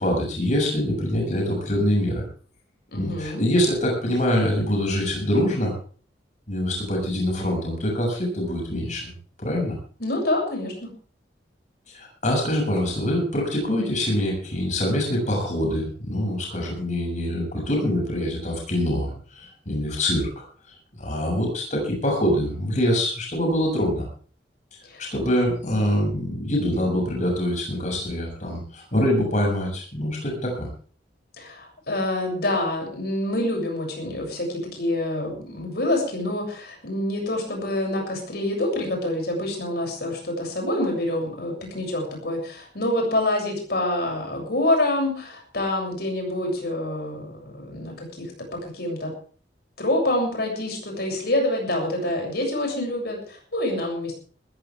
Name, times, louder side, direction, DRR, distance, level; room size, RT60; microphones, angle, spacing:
voice 1, 0.0-2.2 2.9-5.7 6.5-9.1 9.4-9.8 11.9-24.0 25.0-30.7, left 1 dB, 45° left, -1 dB, 7.2 m, -24 dB
voice 2, 2.9-3.4 10.0-10.9 24.9-25.1 31.4-49.1 49.8-54.1, left 1 dB, 60° left, 1 dB, 7.6 m, -26 dB
20.5 x 15.0 x 3.6 m, 0.41 s
head